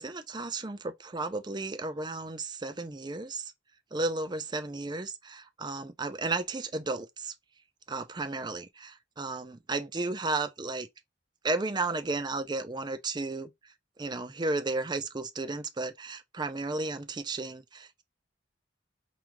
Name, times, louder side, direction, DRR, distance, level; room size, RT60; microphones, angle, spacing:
voice 1, 0.0-3.5 3.9-7.3 7.9-10.9 11.4-13.5 14.0-18.0, right 3 dB, 25° right, 0.5 m, -33 dB
4.9 x 2.4 x 2.9 m
head